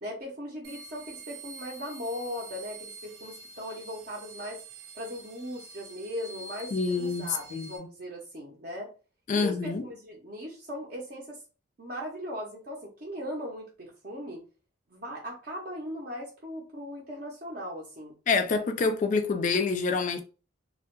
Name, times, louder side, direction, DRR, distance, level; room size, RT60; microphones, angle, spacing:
voice 1, 0.0-4.6 4.9-8.9 9.3-11.4 11.8-14.4 14.9-18.1, equal, 45° right, 0.5 m, -38 dB
sound 1, 0.6-7.8, right 3 dB, 85° right, 0.6 m, -46 dB
voice 2, 6.7-7.7 9.3-9.8 18.3-20.2, left 4 dB, 40° left, 0.3 m, -27 dB
2.2 x 2.1 x 2.9 m
head